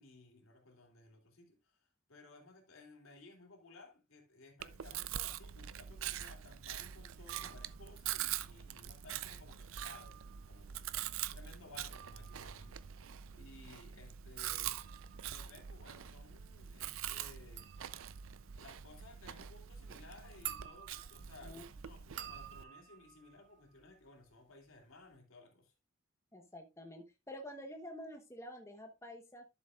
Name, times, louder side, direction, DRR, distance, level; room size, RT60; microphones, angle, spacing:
voice 1, 0.0-1.8 2.1-14.9 15.2-17.7 18.5-25.7, left 2 dB, 80° left, 2.8 m, -58 dB
Chewing mastication, 4.6-22.6, right 11 dB, 80° right, 0.5 m, -44 dB
sound 1, 7.3-8.0 9.6-10.6 11.6-24.3 24.6-25.2, right 10 dB, 60° right, 0.9 m, -52 dB
voice 2, 26.3-29.4, left 1 dB, 15° left, 1.0 m, -49 dB
12.0 x 7.0 x 2.4 m
head